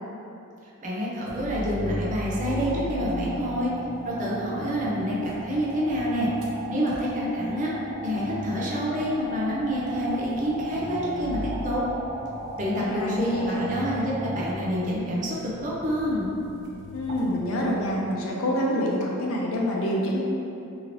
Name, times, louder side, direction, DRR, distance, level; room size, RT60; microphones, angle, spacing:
voice 1, 0.8-3.7 4.0-6.3 6.7-7.7 8.0-11.8 12.6-15.4 15.6-16.3, equal, 35° right, -6 dB, 0.5 m, -27 dB
sound 1, 1.3-18.1, equal, 85° right, 0.6 m, -39 dB
sound 2, 2.3-14.5, right 2 dB, 5° left, 1.0 m, -37 dB
voice 2, 12.8-13.8 16.9-20.2, equal, 75° left, -2 dB, 0.5 m, -27 dB
2.8 x 2.7 x 2.9 m, 2.7 s
head